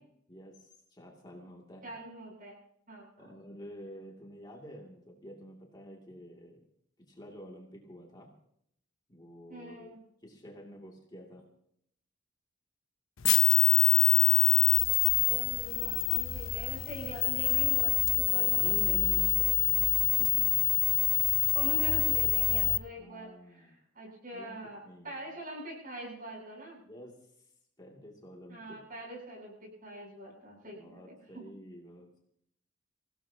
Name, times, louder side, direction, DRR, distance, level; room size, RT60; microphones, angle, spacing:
voice 1, 0.3-1.9 3.2-6.6 7.1-8.3 9.1-9.9 10.2-11.4 18.3-20.5 21.5-21.8 23.0-23.7 24.3-24.6 24.8-25.3 26.8-27.2 27.8-28.8 30.7-32.2, equal, 20° left, -1 dB, 2.5 m, -49 dB
voice 2, 1.8-2.6 2.9-3.4 9.5-10.0 15.2-19.0 21.5-26.8 28.5-31.5, right 1 dB, 45° right, -1 dB, 8.0 m, -44 dB
sound 1, 13.2-22.8, left 19 dB, 80° left, 0.7 m, -25 dB
27.0 x 16.5 x 2.9 m, 0.71 s
head